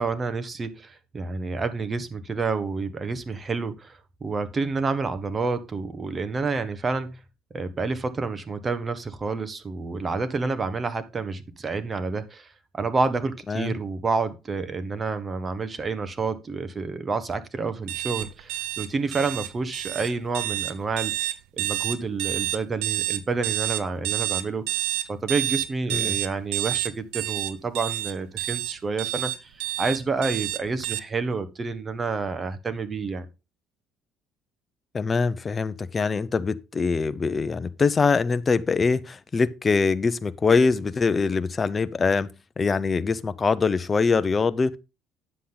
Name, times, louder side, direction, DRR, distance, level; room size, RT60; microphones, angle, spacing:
voice 1, 0.0-7.2 7.5-12.5 12.7-21.2 21.6-24.7 25.1-33.3, right 4 dB, 30° right, 1.3 m, -29 dB
sound 1, 17.9-31.0, right 15 dB, 90° right, 0.6 m, -29 dB
voice 2, 34.9-44.8, left 4 dB, 30° left, 0.7 m, -23 dB
10.0 x 7.5 x 3.9 m
cardioid pair, 95°, 0 cm